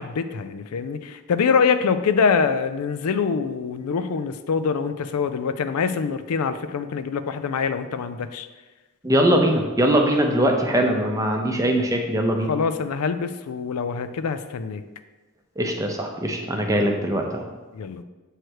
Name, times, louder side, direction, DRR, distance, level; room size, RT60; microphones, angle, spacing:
voice 1, 0.0-8.5 12.5-14.8 16.5-16.6 17.7-18.0, left 5 dB, 90° left, 10 dB, 0.4 m, -24 dB
voice 2, 9.0-12.5 15.6-17.4, equal, 15° right, 2 dB, 0.6 m, -21 dB
7.7 x 3.2 x 4.5 m, 1.2 s
head